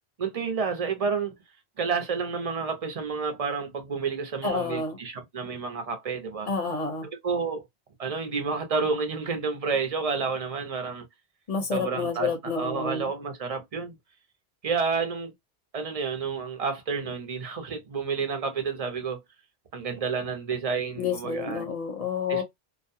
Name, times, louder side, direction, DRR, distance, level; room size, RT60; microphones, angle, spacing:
voice 1, 0.2-1.3 1.8-6.5 7.0-7.6 8.0-11.0 11.7-14.0 14.6-15.3 15.7-19.2 19.7-21.7 22.3-22.4, right 5 dB, 40° right, 0.6 m, -30 dB
voice 2, 4.4-5.0 6.5-7.1 11.5-13.0 21.0-22.4, left 4 dB, 40° left, 0.7 m, -29 dB
2.5 x 2.2 x 2.6 m
omnidirectional pair, 1.1 m